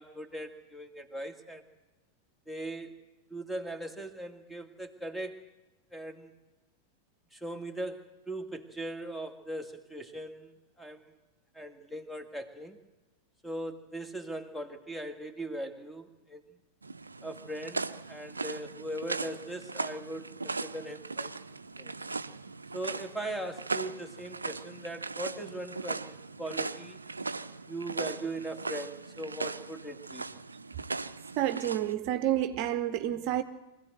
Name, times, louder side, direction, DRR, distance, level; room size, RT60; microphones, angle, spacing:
voice 1, 0.0-1.6 2.5-3.0 3.3-5.4 5.9-6.4 7.3-11.0 11.5-12.8 13.4-16.4 17.2-21.3 21.8-21.9 22.7-27.0 27.7-30.3, right 1 dB, 5° left, 2.2 m, -39 dB
sound 1, 16.8-31.9, right 3 dB, 80° right, 0.6 m, -38 dB
voice 2, 31.4-33.4, right 12 dB, 45° right, 1.0 m, -29 dB
24.0 x 15.5 x 7.9 m
figure-of-eight pair, 90°, 0 cm